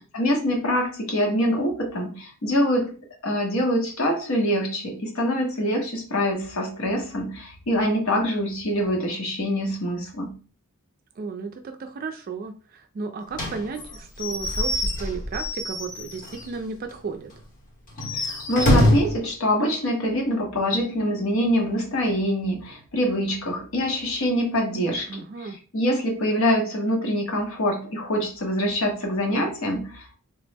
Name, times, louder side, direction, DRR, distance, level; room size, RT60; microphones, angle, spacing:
voice 1, 0.1-2.9 3.2-10.3 18.2-25.2 25.7-30.2, equal, 75° left, 1.0 m, -24 dB
voice 2, 11.2-17.3 25.1-25.6, right 4 dB, 45° right, 0.3 m, -34 dB
Slam / Squeak / Wood, 13.3-16.5 16.9-17.0 17.3-17.4 17.9-19.2, left 1 dB, 40° left, 1.0 m, -24 dB
3.4 x 2.0 x 3.3 m
head